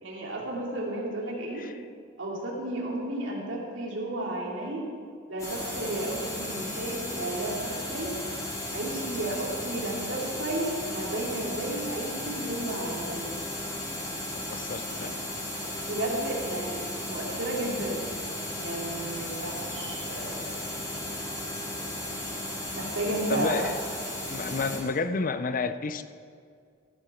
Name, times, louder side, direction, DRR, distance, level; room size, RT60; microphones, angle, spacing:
voice 1, 0.0-1.6 2.2-4.8 5.3-8.1 8.7-13.3 15.9-18.0 18.6-20.4 22.7-23.7, right 1 dB, 75° right, -2 dB, 2.7 m, -33 dB
sound 1, 5.4-24.8, left 1 dB, 15° left, 3.0 m, -35 dB
voice 2, 14.5-15.1 23.3-23.8 24.3-26.0, left 4 dB, 45° left, 11 dB, 0.5 m, -30 dB
15.5 x 10.0 x 4.3 m, 2.2 s
head